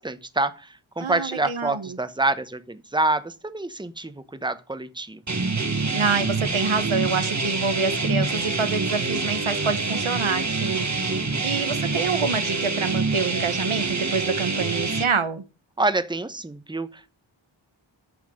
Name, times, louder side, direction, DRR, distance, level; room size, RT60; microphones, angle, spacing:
voice 1, 0.0-5.2 11.1-11.7 15.8-17.1, right 2 dB, 10° right, 1.0 m, -27 dB
voice 2, 1.0-2.0 5.9-11.1 11.4-15.4, right 5 dB, 90° right, 1.3 m, -27 dB
sound 1, 5.3-15.0, right 3 dB, 35° right, 1.3 m, -26 dB
9.4 x 7.1 x 6.4 m
wide cardioid pair, 45°, 48 cm